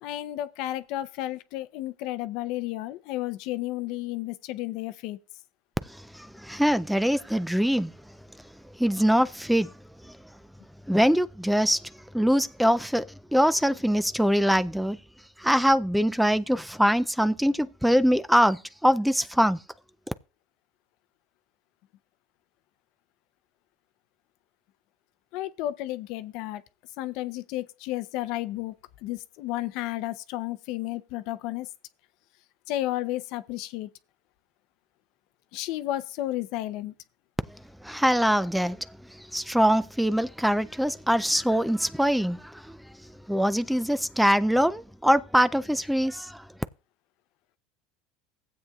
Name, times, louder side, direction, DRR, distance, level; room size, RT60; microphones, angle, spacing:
voice 1, 0.0-5.2 25.3-26.6 27.0-28.7 29.0-31.7 32.7-33.9 35.5-36.9, left 15 dB, 65° left, 0.6 m, -32 dB
voice 2, 5.9-7.9 8.8-9.7 10.0-10.1 10.9-13.0 13.3-15.0 15.4-19.6 37.8-38.8 39.1-42.7 43.3-46.5, equal, ahead, 0.3 m, -23 dB
15.5 x 8.0 x 2.3 m
supercardioid pair, 100°, 0 cm